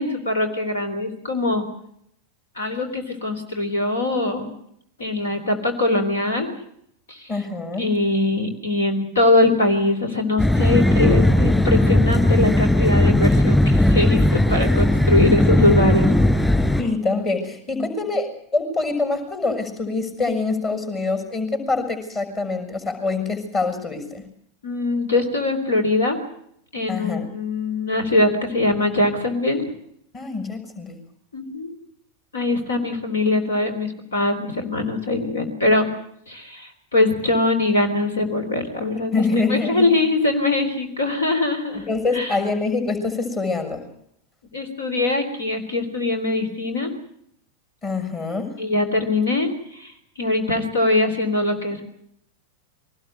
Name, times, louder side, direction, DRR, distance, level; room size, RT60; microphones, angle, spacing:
voice 1, 0.0-1.6 2.6-4.5 5.0-6.5 7.1-7.3 7.8-16.1 17.7-17.9 24.6-26.2 26.7-29.6 31.3-31.7 32.3-35.9 36.3-39.2 39.5-41.9 42.1-42.4 44.5-46.9 48.6-51.8, left 2 dB, 70° left, 8 dB, 3.7 m, -22 dB
voice 2, 7.3-7.9 16.8-24.2 26.9-27.3 30.1-31.0 39.1-39.9 41.7-43.8 47.8-48.6, left 3 dB, 25° left, 7 dB, 6.2 m, -25 dB
sound 1, 10.4-16.8, left 1 dB, 10° left, 3.3 m, -17 dB
23.0 x 19.0 x 7.9 m, 0.71 s
figure-of-eight pair, 90°, 0 cm